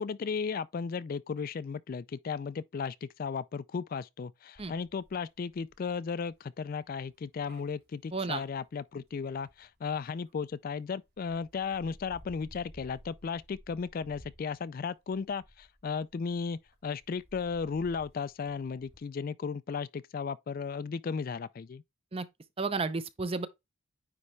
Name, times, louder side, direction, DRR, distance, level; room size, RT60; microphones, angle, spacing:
voice 1, 0.0-21.8, left 5 dB, 40° left, 0.3 m, -35 dB
sound 1, 4.5-10.5 11.0-19.0, equal, 50° right, 2.5 m, -57 dB
voice 2, 8.1-8.4 22.1-22.3 22.6-23.5, right 4 dB, 25° right, 0.5 m, -32 dB
9.6 x 3.4 x 3.2 m
head